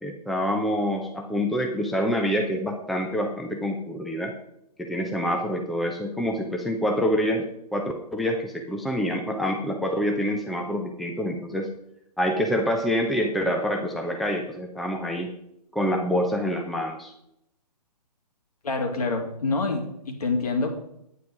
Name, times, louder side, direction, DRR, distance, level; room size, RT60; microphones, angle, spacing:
voice 1, 0.0-4.3 4.8-7.4 7.7-11.7 12.2-15.3 15.7-17.1, equal, ahead, 2 dB, 0.7 m, -26 dB
voice 2, 18.6-20.7, left 3 dB, 65° left, 3 dB, 2.8 m, -26 dB
9.4 x 9.3 x 4.8 m, 0.78 s
figure-of-eight pair, 135°, 21 cm